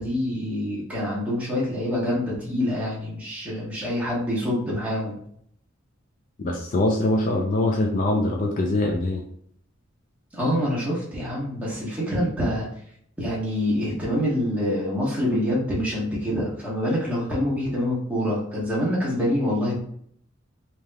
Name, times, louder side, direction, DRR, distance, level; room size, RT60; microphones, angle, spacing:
voice 1, 0.0-5.2 10.3-12.7 13.2-19.8, left 1 dB, 5° right, -7 dB, 1.1 m, -26 dB
voice 2, 6.4-9.2, left 2 dB, 40° left, 1 dB, 0.4 m, -23 dB
3.4 x 2.9 x 2.2 m, 0.65 s
head